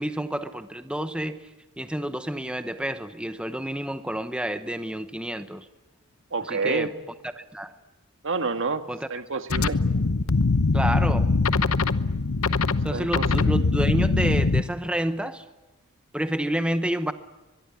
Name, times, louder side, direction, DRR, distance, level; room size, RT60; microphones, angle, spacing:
voice 1, 0.0-1.5 1.8-5.7 6.4-6.9 7.4-7.7 8.9-9.1 10.7-11.3 12.8-15.4 16.1-17.1, right 1 dB, 5° right, 0.9 m, -29 dB
voice 2, 6.3-6.9 8.2-8.8 9.1-9.8 12.9-13.5, right 4 dB, 60° right, 1.7 m, -28 dB
sound 1, 9.5-14.6, left 3 dB, 65° left, 0.9 m, -22 dB
23.5 x 22.5 x 8.4 m
head